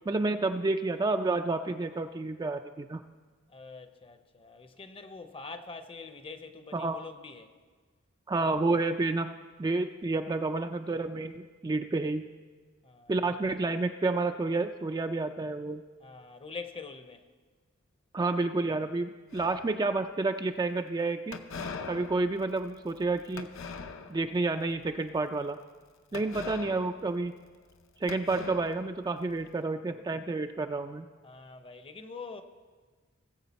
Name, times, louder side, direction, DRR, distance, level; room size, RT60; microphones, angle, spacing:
voice 1, 0.1-3.0 6.7-7.0 8.3-9.3 9.6-12.3 13.1-15.8 18.1-21.4 21.9-23.5 24.1-25.6 26.1-27.3 28.0-31.1, right 3 dB, 20° right, 0.3 m, -30 dB
voice 2, 3.5-7.5 12.8-13.6 16.0-17.2 26.1-26.5 31.2-32.4, left 4 dB, 25° left, 0.7 m, -45 dB
sound 1, 19.3-20.1 21.3-24.4 24.8-25.1 26.1-27.8 28.1-29.4, left 4 dB, 70° left, 0.7 m, -43 dB
18.5 x 7.6 x 4.1 m
head